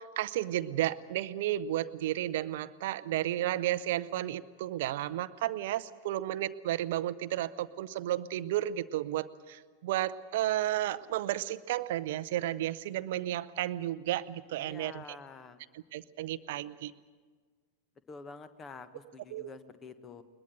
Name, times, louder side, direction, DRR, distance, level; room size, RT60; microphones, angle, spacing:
voice 1, 0.0-15.2 15.7-16.9 19.3-19.5, right 13 dB, 55° right, 16 dB, 0.7 m, -33 dB
voice 2, 14.5-15.6 18.1-20.2, left 4 dB, 20° left, 12 dB, 1.3 m, -48 dB
21.5 x 21.5 x 7.7 m, 1.5 s
figure-of-eight pair, 90°, 0 cm